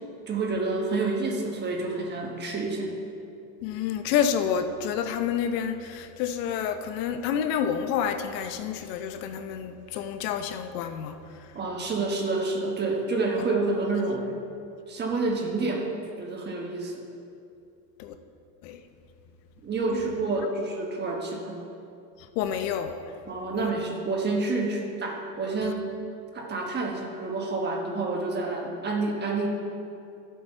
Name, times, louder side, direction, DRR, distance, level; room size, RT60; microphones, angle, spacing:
voice 1, 0.3-2.9 11.5-14.3 14.9-17.0 19.6-21.6 23.3-25.9 26.3-29.5, right 3 dB, 20° right, 0 dB, 1.2 m, -28 dB
voice 2, 3.6-11.5 18.0-18.1 18.6-18.8 19.9-20.0 22.4-23.1 23.5-23.7 25.6-25.7, left 8 dB, 75° left, 8 dB, 0.9 m, -29 dB
12.5 x 7.9 x 4.5 m, 2.6 s
supercardioid pair, 150°, 50 cm